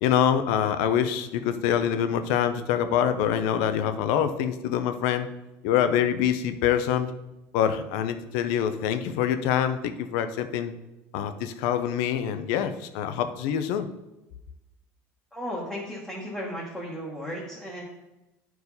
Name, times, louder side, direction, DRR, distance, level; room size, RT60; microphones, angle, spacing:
voice 1, 0.0-5.3 5.6-7.1 7.5-10.7 11.1-13.9, left 9 dB, 75° left, 9 dB, 0.7 m, -25 dB
voice 2, 15.3-17.8, equal, 5° left, -6 dB, 1.2 m, -35 dB
11.0 x 4.7 x 4.0 m, 0.98 s
cardioid pair, 180°, 6 cm